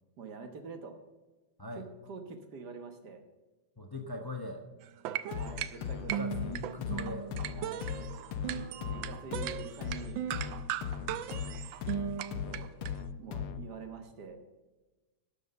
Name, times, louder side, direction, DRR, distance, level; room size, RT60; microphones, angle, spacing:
voice 1, 0.2-0.9 1.7-3.2 5.3-6.3 7.5-7.9 8.5-10.2 11.9-12.7 13.2-14.4, right 5 dB, 55° right, 7 dB, 1.6 m, -46 dB
voice 2, 3.8-4.6 6.1-7.3 8.4-9.3 10.9-11.2, left 2 dB, 25° left, 3 dB, 0.5 m, -42 dB
sound 1, 4.8-12.9, right 10 dB, 75° right, 1.3 m, -37 dB
sound 2, 5.3-13.8, left 7 dB, 80° left, 1.6 m, -39 dB
12.5 x 6.7 x 6.8 m, 1.2 s
omnidirectional pair, 2.4 m